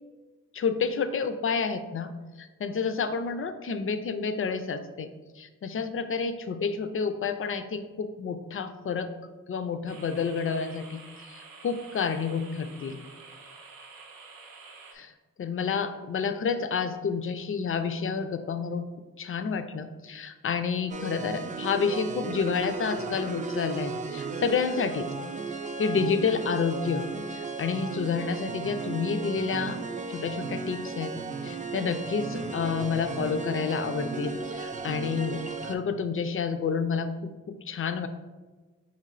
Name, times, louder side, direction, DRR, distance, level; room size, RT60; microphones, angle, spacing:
voice 1, 0.5-2.1 2.4-5.1 5.4-9.1 9.5-11.0 11.3-13.0 14.9-15.1 15.4-18.8 19.2-25.1 25.8-29.8 30.1-31.1 31.4-37.1 37.5-38.1, left 5 dB, 40° left, 9 dB, 0.4 m, -29 dB
sound 1, 9.9-15.0, right 4 dB, 80° right, 0.7 m, -49 dB
sound 2, 20.9-35.8, right 4 dB, 25° right, 0.4 m, -35 dB
5.1 x 3.1 x 2.5 m, 1.3 s
cardioid pair, 55°, 34 cm